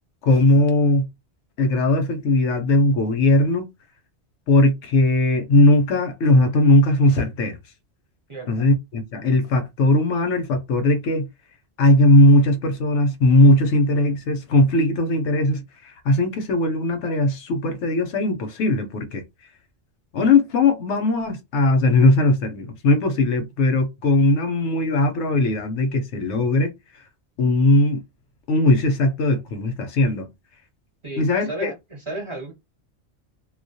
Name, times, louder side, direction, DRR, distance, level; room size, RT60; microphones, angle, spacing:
voice 1, 0.2-1.1 1.6-3.7 4.5-7.6 8.5-11.3 11.8-19.2 20.1-26.7 27.4-28.0 28.5-30.3 31.2-31.7, left 2 dB, 90° left, 0.9 m, -19 dB
voice 2, 8.3-8.7 31.0-32.5, right 2 dB, 35° right, 0.6 m, -33 dB
2.3 x 2.0 x 2.6 m
omnidirectional pair, 1.1 m